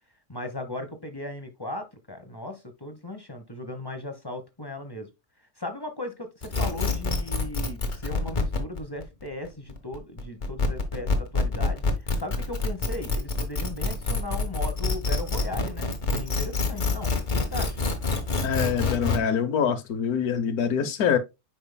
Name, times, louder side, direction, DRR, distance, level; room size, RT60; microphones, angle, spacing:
voice 1, 0.3-5.1 5.6-17.8, left 1 dB, 20° left, 1.1 m, -37 dB
sound 1, 6.4-19.2, left 3 dB, 35° left, 1.4 m, -26 dB
voice 2, 18.4-21.2, left 7 dB, 85° left, 1.4 m, -25 dB
8.7 x 5.6 x 2.2 m
omnidirectional pair, 1.5 m